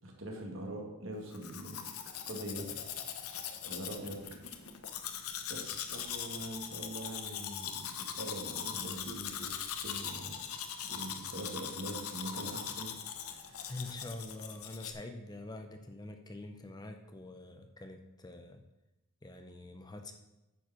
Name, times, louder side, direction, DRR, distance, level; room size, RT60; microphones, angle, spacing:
voice 1, 0.0-1.9 2.3-2.7 3.6-4.2 5.5-10.4 10.8-13.9, right 1 dB, 60° right, 0 dB, 2.0 m, -43 dB
Domestic sounds home sounds, 1.3-14.9, left 8 dB, 85° left, 0.8 m, -41 dB
voice 2, 13.7-18.6 19.2-20.1, left 2 dB, 20° left, 6 dB, 0.6 m, -45 dB
9.2 x 4.8 x 6.2 m, 0.99 s
head